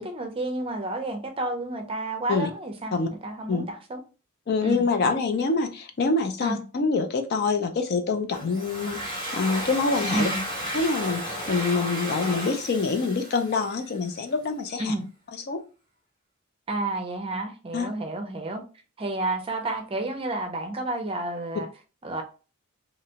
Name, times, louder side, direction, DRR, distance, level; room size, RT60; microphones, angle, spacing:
voice 1, 0.0-4.0 4.6-4.9 6.4-6.6 10.1-10.4 14.8-15.0 16.7-18.6 19.0-21.7 22.0-22.2, right 2 dB, 25° right, 0.5 m, -30 dB
voice 2, 4.5-10.3 10.7-14.9 15.5-15.6 17.7-17.9, left 4 dB, 45° left, 0.4 m, -26 dB
Domestic sounds home sounds, 8.3-14.0, equal, 25° left, 1.0 m, -33 dB
2.8 x 2.2 x 2.7 m
head